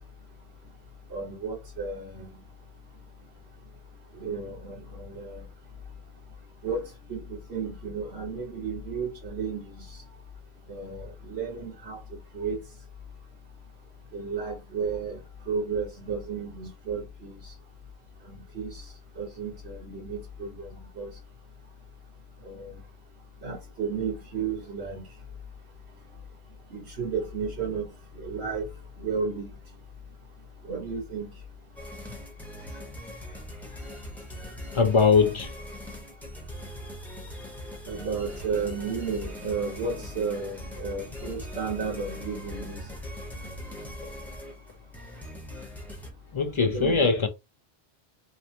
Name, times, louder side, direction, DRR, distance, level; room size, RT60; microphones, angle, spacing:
voice 1, 1.1-2.4 4.2-5.4 6.6-9.8 10.7-12.0 12.3-12.6 14.1-15.2 15.5-17.4 18.3-18.8 19.2-20.7 21.0-21.1 22.4-22.8 23.4-25.0 26.7-27.9 28.2-28.7 29.0-29.5 30.6-31.3 37.8-42.8 46.6-47.1, right 5 dB, 85° right, 1.6 m, -33 dB
sound 1, 31.8-46.1, equal, ahead, 0.9 m, -41 dB
voice 2, 33.7-34.0 34.5-35.5 45.6-45.7 46.3-47.3, left 5 dB, 55° left, 0.3 m, -23 dB
3.8 x 2.1 x 2.8 m
omnidirectional pair, 1.1 m